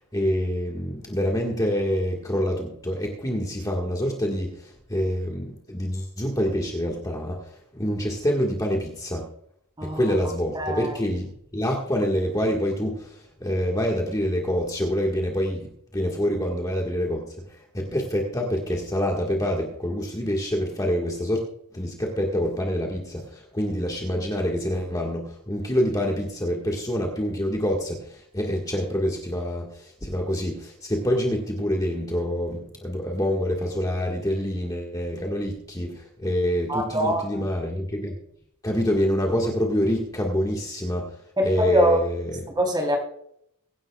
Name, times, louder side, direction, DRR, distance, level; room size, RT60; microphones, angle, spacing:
voice 1, 0.1-7.5 7.7-9.2 9.8-17.5 17.7-21.4 21.7-38.1 38.6-41.1 41.4-42.5, equal, 15° left, -1 dB, 1.7 m, -26 dB
voice 2, 10.5-11.0 36.7-37.5 41.4-42.0 42.5-43.0, equal, 20° right, 2 dB, 3.7 m, -23 dB
23.0 x 11.0 x 2.4 m, 0.71 s
head